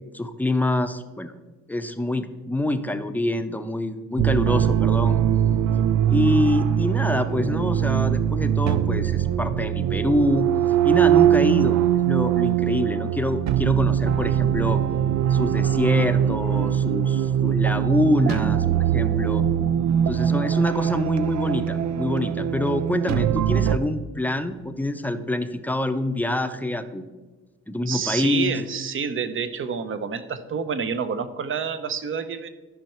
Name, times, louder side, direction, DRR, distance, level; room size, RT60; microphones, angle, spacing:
voice 1, 0.1-1.3 1.7-5.2 6.1-10.5 10.8-11.8 12.0-14.8 15.3-19.4 20.1-27.1 27.7-28.5, left 1 dB, 5° left, 9 dB, 0.7 m, -26 dB
sound 1, 4.2-23.8, right 10 dB, 65° right, 0.5 m, -22 dB
voice 2, 19.9-20.5 27.9-32.5, right 6 dB, 45° right, 12 dB, 0.8 m, -29 dB
12.5 x 5.5 x 4.4 m, 1.2 s
cardioid pair, 90°, 30 cm